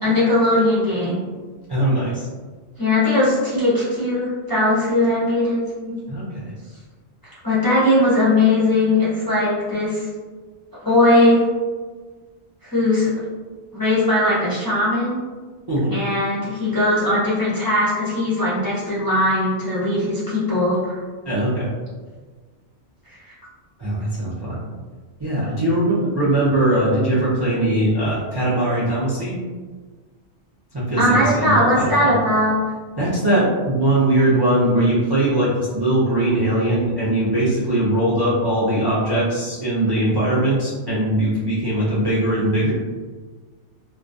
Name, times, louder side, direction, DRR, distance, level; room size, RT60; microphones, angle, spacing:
voice 1, 0.0-1.2 2.8-5.9 7.4-10.1 10.8-11.4 12.6-13.1 13.7-15.2 15.9-20.9 31.0-32.6, left 1 dB, 30° left, -10 dB, 0.4 m, -19 dB
voice 2, 1.7-2.3 6.1-6.5 15.7-15.9 21.2-21.7 23.8-24.6 25.2-29.4 30.7-32.2 33.0-42.7, right 1 dB, 40° right, -8 dB, 0.3 m, -20 dB
2.3 x 2.1 x 2.5 m, 1.4 s
omnidirectional pair, 1.2 m